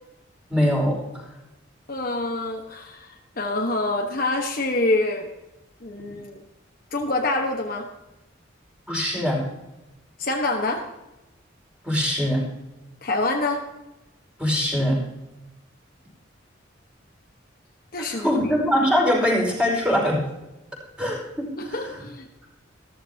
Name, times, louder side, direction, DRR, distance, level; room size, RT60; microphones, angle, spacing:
voice 1, 0.5-1.0 8.9-9.4 11.8-12.4 14.4-15.0 18.0-20.2 21.0-21.5, equal, 5° right, -4 dB, 5.3 m, -22 dB
voice 2, 1.9-5.3 5.8-6.4 6.9-7.9 10.2-10.8 13.0-13.6 17.9-18.6 21.6-22.3, left 2 dB, 50° left, 1 dB, 1.4 m, -26 dB
15.0 x 14.0 x 2.9 m, 0.98 s
head